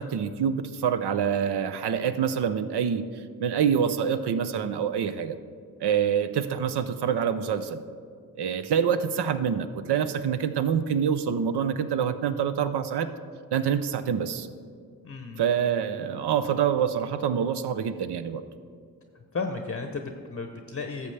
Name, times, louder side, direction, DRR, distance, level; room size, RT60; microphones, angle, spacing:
voice 1, 0.0-3.0 3.4-5.4 5.8-7.8 8.4-13.1 13.5-14.5 15.4-18.4, right 8 dB, 75° right, 11 dB, 0.6 m, -26 dB
voice 2, 15.0-15.4 19.1-21.1, left 4 dB, 35° left, 5 dB, 0.7 m, -34 dB
13.0 x 6.9 x 3.3 m, 2.1 s
supercardioid pair, 40°, 40 cm